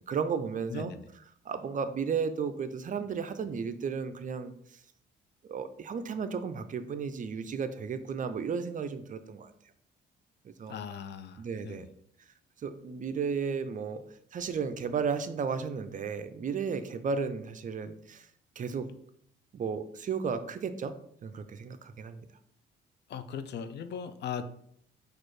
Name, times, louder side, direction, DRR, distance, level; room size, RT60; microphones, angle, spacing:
voice 1, 0.1-0.9 1.5-4.5 5.5-9.5 10.4-10.8 11.4-11.9 12.6-14.0 14.3-18.3 18.6-18.9 19.5-20.9 21.2-22.2, right 6 dB, 40° right, 10 dB, 0.5 m, -34 dB
voice 2, 0.7-1.0 10.7-11.9 23.1-24.4, left 7 dB, 60° left, 11 dB, 0.5 m, -39 dB
4.2 x 2.5 x 4.8 m, 0.67 s
cardioid pair, 90°, 20 cm